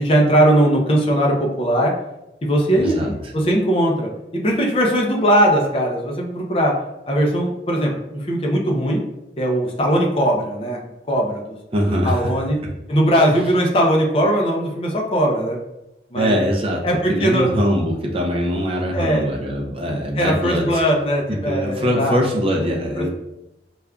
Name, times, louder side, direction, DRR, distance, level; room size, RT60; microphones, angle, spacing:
voice 1, 0.0-1.9 2.4-6.7 7.1-9.0 9.4-10.8 11.1-11.6 12.0-12.6 12.9-15.6 16.1-16.4 16.8-17.5 18.9-19.2 20.2-22.2 23.0-23.1, equal, 30° left, -1 dB, 0.5 m, -19 dB
voice 2, 2.8-3.1 11.7-12.3 12.6-12.8 13.3-13.4 16.1-20.8 21.3-23.1, equal, 30° right, 0 dB, 0.5 m, -22 dB
5.0 x 2.3 x 2.2 m, 0.92 s
head